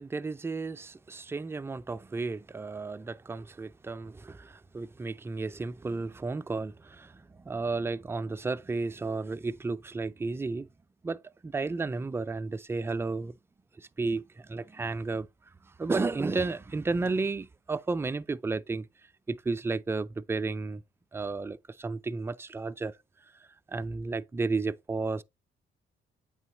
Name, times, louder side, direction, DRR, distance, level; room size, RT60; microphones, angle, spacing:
voice 1, 0.0-7.1 7.4-10.7 11.0-13.3 13.8-15.3 15.8-18.9 19.3-20.8 21.1-22.9 23.7-25.2, right 3 dB, 10° right, 0.3 m, -33 dB
8.4 x 3.9 x 3.0 m
cardioid pair, 90°, 20 cm